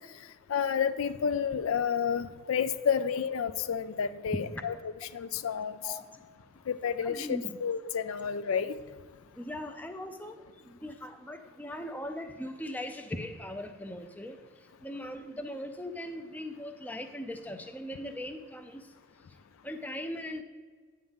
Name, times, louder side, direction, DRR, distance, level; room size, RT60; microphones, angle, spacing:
voice 1, 0.5-4.7 5.1-5.8 6.7-8.7, left 7 dB, 80° left, 13 dB, 0.4 m, -30 dB
voice 2, 7.0-7.6 9.4-10.4 10.7-14.4 14.8-18.9 19.6-20.4, left 1 dB, 10° left, 6 dB, 0.4 m, -39 dB
9.6 x 3.7 x 7.0 m, 1.5 s
head